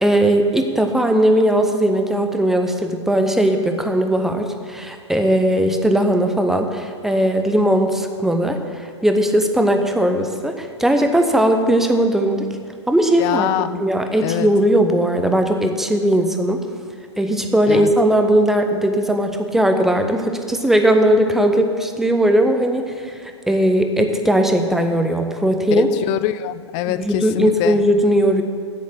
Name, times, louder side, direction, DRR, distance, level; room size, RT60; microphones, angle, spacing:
voice 1, 0.0-12.4 12.9-13.5 13.8-16.6 17.2-25.9 26.9-28.4, right 1 dB, ahead, 5 dB, 0.7 m, -18 dB
voice 2, 13.2-13.8 14.2-14.5 17.7-17.9 25.8-27.8, left 14 dB, 30° left, 14 dB, 0.4 m, -24 dB
8.3 x 7.5 x 7.2 m, 2.2 s
figure-of-eight pair, 110°, 15 cm